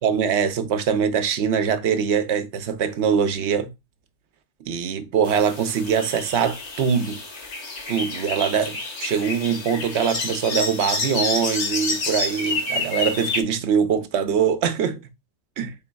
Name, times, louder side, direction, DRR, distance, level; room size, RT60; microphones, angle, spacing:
voice 1, 0.0-3.7 4.6-7.2 7.9-15.0 15.6-15.7, right 7 dB, 70° right, 0.9 m, -23 dB
sound 1, 5.2-13.4, left 3 dB, 70° left, 1.3 m, -29 dB
4.1 x 3.9 x 2.2 m
omnidirectional pair, 1.2 m